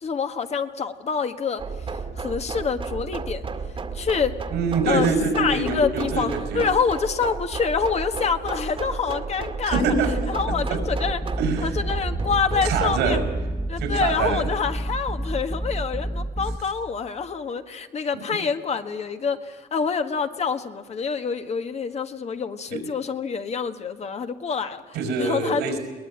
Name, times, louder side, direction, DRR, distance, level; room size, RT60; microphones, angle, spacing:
voice 1, 0.0-1.6 2.2-3.5 3.9-4.3 4.9-5.1 5.4-9.9 10.3-11.2 11.6-13.2 13.7-25.6, left 5 dB, 40° left, 8 dB, 1.6 m, -26 dB
sound 1, 1.6-15.3, right 4 dB, 30° right, 2.0 m, -33 dB
voice 2, 4.5-6.6 9.6-10.3 10.7-10.8 11.4-11.8 12.6-13.2 13.8-14.5 22.7-22.8 24.9-25.8, right 4 dB, 90° right, 6 dB, 5.8 m, -24 dB
sound 2, 9.7-16.6, right 1 dB, 5° right, 1.4 m, -29 dB
22.0 x 19.0 x 8.7 m, 1.4 s
cardioid pair, 110°, 17 cm